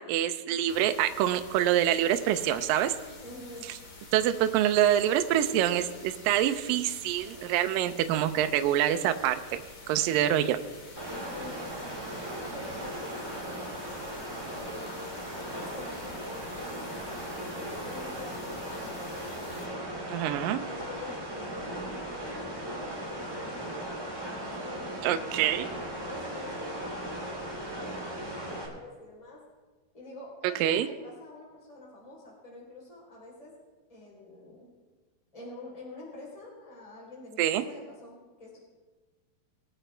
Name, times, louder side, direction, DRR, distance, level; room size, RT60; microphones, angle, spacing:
voice 1, 0.0-2.9 4.1-9.4 9.9-10.6 20.1-20.6 25.0-25.7 30.6-30.9 37.4-37.6, right 11 dB, 80° right, 8 dB, 2.1 m, -26 dB
sound 1, 0.7-19.6, left 3 dB, 60° left, 3.9 m, -48 dB
voice 2, 3.2-3.7 5.2-5.9 7.2-7.6 11.2-12.0 12.4-17.2 17.8-20.0 20.6-22.5 22.8-25.5 26.0-29.4 29.9-33.5 33.9-34.7 35.3-38.6, left 2 dB, 10° left, -4 dB, 3.2 m, -47 dB
sound 2, 11.0-28.7, right 1 dB, 10° right, 1.0 m, -37 dB
21.0 x 9.1 x 3.4 m, 1.3 s
omnidirectional pair, 4.6 m